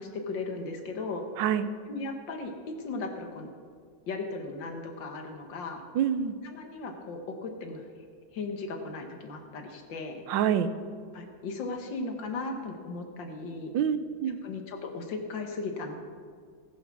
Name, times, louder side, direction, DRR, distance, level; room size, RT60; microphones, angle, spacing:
voice 1, 0.0-1.2 1.9-3.5 4.1-5.8 6.4-7.9 8.3-10.2 11.1-13.7 14.4-16.0, left 3 dB, 65° left, 4 dB, 2.1 m, -36 dB
voice 2, 1.4-1.7 5.9-6.3 10.3-10.7 13.7-14.4, right 9 dB, 70° right, 12 dB, 1.3 m, -26 dB
19.5 x 7.2 x 6.2 m, 2.1 s
omnidirectional pair, 2.3 m